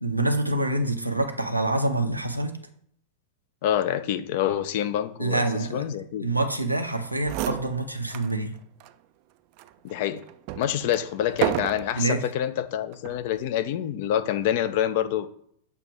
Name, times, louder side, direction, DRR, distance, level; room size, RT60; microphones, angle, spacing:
voice 1, 0.0-2.5 5.2-5.8 6.2-8.6 12.0-12.3, right 2 dB, 85° right, 5 dB, 0.6 m, -26 dB
voice 2, 3.6-5.5 5.7-6.3 9.8-10.2 10.6-15.3, left 11 dB, 50° left, 11 dB, 0.5 m, -26 dB
sound 1, 6.9-7.0 7.2-8.3 8.8-8.9 9.6-12.2 12.9-13.3, right 14 dB, 45° right, 0.3 m, -32 dB
6.9 x 2.9 x 4.9 m, 0.68 s
figure-of-eight pair, 90°, 0 cm